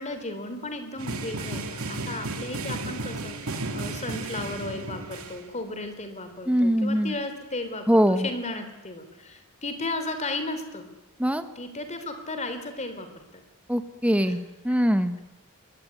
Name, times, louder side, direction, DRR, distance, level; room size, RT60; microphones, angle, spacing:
voice 1, 0.0-10.9 11.6-13.4 14.2-14.3 14.7-14.8, left 2 dB, 30° left, 8 dB, 3.5 m, -35 dB
sound 1, 1.0-5.4, right 2 dB, 70° right, 2.6 m, -33 dB
voice 2, 6.5-7.1 7.9-8.3 11.2-11.4 13.7-15.1, equal, 5° right, 9 dB, 1.5 m, -22 dB
22.5 x 22.0 x 9.5 m, 1.0 s
head